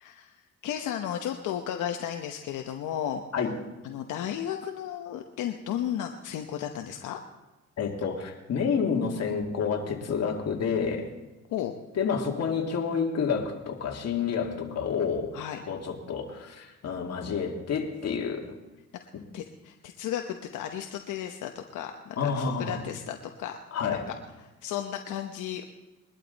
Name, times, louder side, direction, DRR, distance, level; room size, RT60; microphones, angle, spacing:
voice 1, 0.0-3.2 3.8-7.2 11.5-11.7 15.3-15.6 19.3-23.6 24.4-25.6, left 10 dB, 85° left, 4 dB, 1.0 m, -34 dB
voice 2, 7.8-11.1 12.0-15.3 15.7-18.5 22.2-22.8 23.7-24.0, left 6 dB, 55° left, 2 dB, 2.3 m, -29 dB
21.5 x 12.0 x 4.1 m, 1.1 s
cardioid pair, 90°, 30 cm